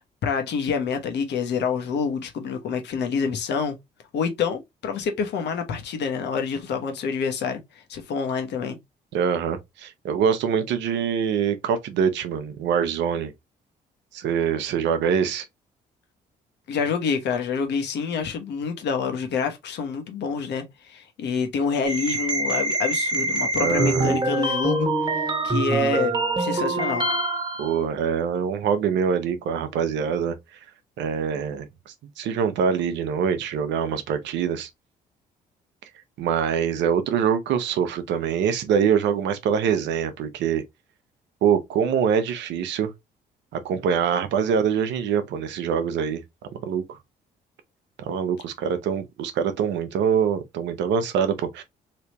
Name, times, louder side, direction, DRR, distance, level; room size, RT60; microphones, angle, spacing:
voice 1, 0.2-3.8 4.1-7.6 7.9-8.8 16.7-27.1, left 5 dB, 70° left, 1.1 m, -27 dB
voice 2, 9.1-13.3 14.1-15.4 23.6-24.1 27.6-30.4 31.0-34.7 36.2-40.6 41.4-42.9 43.5-46.2 46.6-47.0 48.0-51.6, right 7 dB, 75° right, 0.8 m, -24 dB
sound 1, 21.8-27.7, right 2 dB, 25° right, 1.3 m, -25 dB
3.3 x 3.0 x 2.9 m
supercardioid pair, 60°, 19 cm